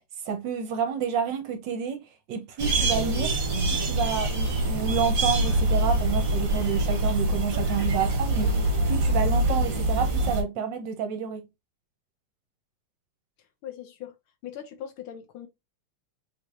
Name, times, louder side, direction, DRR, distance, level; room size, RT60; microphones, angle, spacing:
voice 1, 0.3-2.0 2.3-3.4 3.7-11.5, right 7 dB, 65° right, 1.3 m, -29 dB
sound 1, 2.6-10.4, right 1 dB, 45° right, 1.3 m, -25 dB
voice 2, 13.6-14.2 14.4-15.5, left 10 dB, 80° left, 1.7 m, -40 dB
4.3 x 3.2 x 2.4 m
omnidirectional pair, 2.4 m